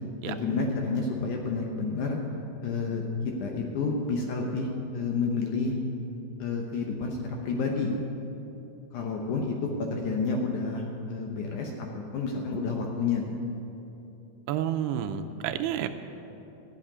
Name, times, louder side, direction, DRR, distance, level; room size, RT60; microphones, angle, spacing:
voice 1, 0.2-2.2 2.6-3.0 3.4-5.7 6.4-7.9 8.9-13.3, left 4 dB, 70° left, 1 dB, 2.0 m, -30 dB
voice 2, 14.5-15.9, right 10 dB, 90° right, 8 dB, 2.7 m, -30 dB
13.5 x 6.4 x 9.8 m, 2.9 s
omnidirectional pair, 4.5 m